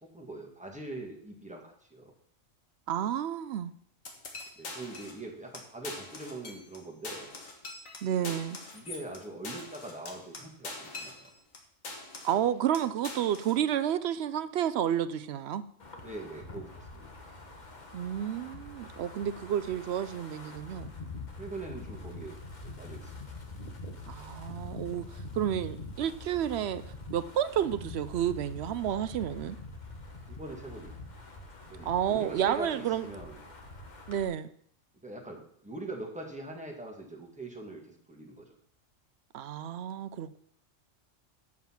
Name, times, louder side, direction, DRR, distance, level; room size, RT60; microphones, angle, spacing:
voice 1, 0.0-2.1 4.6-7.3 8.1-8.4 8.7-11.3 16.0-17.1 21.4-22.3 22.6-23.1 30.3-31.0 31.7-33.4 35.0-38.5, right 2 dB, 5° right, 1.9 m, -42 dB
voice 2, 2.9-3.7 8.0-8.6 12.2-15.6 17.9-20.9 24.1-25.0 25.4-26.8 27.1-29.6 31.9-33.1 34.1-34.5 39.3-40.4, right 10 dB, 65° right, 0.7 m, -30 dB
sound 1, 4.0-5.2 5.5-5.6 5.8-6.8 7.0-11.6 11.8-12.4 12.7-13.6, left 3 dB, 80° left, 1.9 m, -43 dB
Wind, 15.8-34.3, left 2 dB, 35° left, 1.3 m, -45 dB
7.9 x 7.2 x 5.8 m
omnidirectional pair, 1.4 m